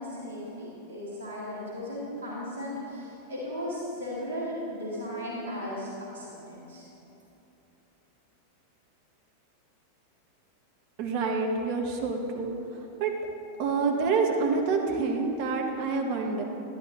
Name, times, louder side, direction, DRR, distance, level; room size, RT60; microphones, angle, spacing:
voice 1, 0.0-6.8, left 1 dB, 85° left, -10 dB, 2.0 m, -36 dB
voice 2, 11.0-12.5 13.0-13.1 13.6-16.4, right 4 dB, 45° right, 2 dB, 1.3 m, -27 dB
12.5 x 10.5 x 3.1 m, 3.0 s
figure-of-eight pair, 90°, 0 cm